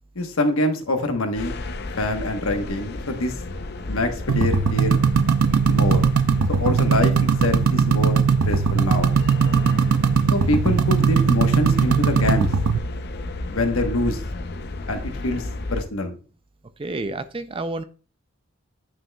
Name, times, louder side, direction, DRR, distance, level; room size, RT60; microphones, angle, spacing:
voice 1, 0.1-1.6 2.0-3.3 3.9-5.0 5.7-6.0 6.6-9.1 10.3-12.5 13.5-14.2 14.9-16.2, left 2 dB, 75° left, 6 dB, 1.1 m, -25 dB
sound 1, 1.3-15.8, left 2 dB, 50° left, 0.5 m, -32 dB
sound 2, 4.3-12.8, right 5 dB, 80° right, 0.5 m, -19 dB
voice 2, 9.5-10.2 16.8-17.8, right 2 dB, 25° right, 11 dB, 0.3 m, -31 dB
9.5 x 5.9 x 2.2 m, 0.37 s
head